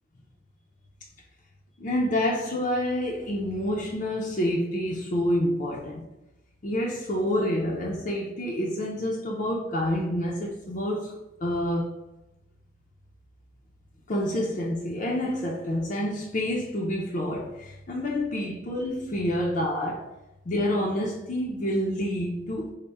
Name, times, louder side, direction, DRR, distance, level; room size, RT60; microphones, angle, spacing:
voice 1, 1.8-6.0 6.6-11.9 14.1-20.1 20.5-22.7, left 1 dB, 40° left, 0.4 m, -28 dB
3.4 x 2.1 x 4.1 m
head